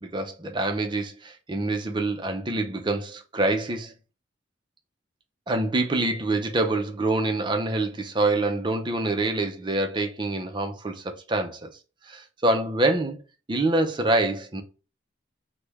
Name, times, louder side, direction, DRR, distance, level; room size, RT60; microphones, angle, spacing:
voice 1, 0.0-3.9 5.5-11.7 12.1-13.2 13.5-14.6, right 2 dB, 25° right, 0.5 m, -26 dB
3.2 x 2.2 x 3.4 m
head